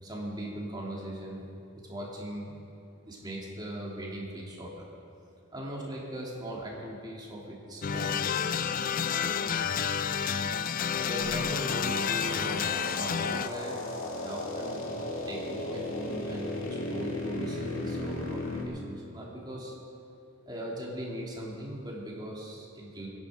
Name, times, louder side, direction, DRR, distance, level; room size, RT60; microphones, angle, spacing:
voice 1, 0.0-1.5 1.7-2.6 3.0-4.8 5.5-8.2 9.0-9.5 11.0-13.8 14.2-14.8 15.3-19.7 20.5-23.1, right 1 dB, 20° right, -4 dB, 3.1 m, -39 dB
sound 1, 7.8-13.5, left 7 dB, 40° left, 0.4 m, -30 dB
sound 2, 11.2-18.6, left 2 dB, 75° left, 2.6 m, -36 dB
22.5 x 11.0 x 5.2 m, 2.5 s
head